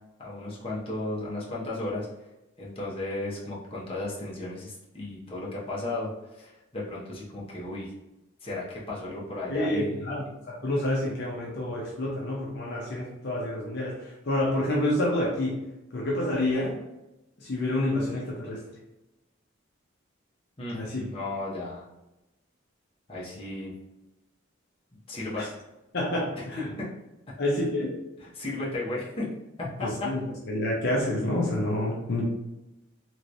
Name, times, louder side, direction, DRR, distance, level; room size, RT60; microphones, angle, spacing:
voice 1, 0.2-2.1 2.6-7.9 8.4-10.1 20.6-21.8 23.1-23.7 25.1-25.6 28.2-29.3 29.8-29.9, left 2 dB, 30° left, -5 dB, 0.8 m, -34 dB
voice 2, 9.5-15.6 15.9-16.8 17.4-18.6 20.7-21.0 25.4-25.5 25.9-26.7 27.4-28.0 29.8-32.2, left 1 dB, 55° left, -3 dB, 0.6 m, -28 dB
3.0 x 3.0 x 2.6 m, 0.95 s
head